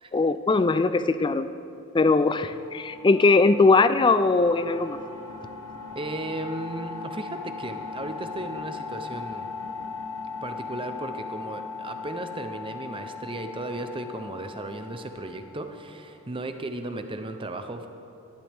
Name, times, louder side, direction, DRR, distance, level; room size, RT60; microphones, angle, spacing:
voice 1, 0.1-1.5 1.9-5.0, left 3 dB, 20° left, 13 dB, 0.3 m, -20 dB
sound 1, 2.6-16.0, left 4 dB, 60° left, 1.3 m, -39 dB
voice 2, 5.9-9.5 10.4-17.9, right 2 dB, 25° right, 7 dB, 0.7 m, -35 dB
18.0 x 12.0 x 3.5 m, 2.9 s
head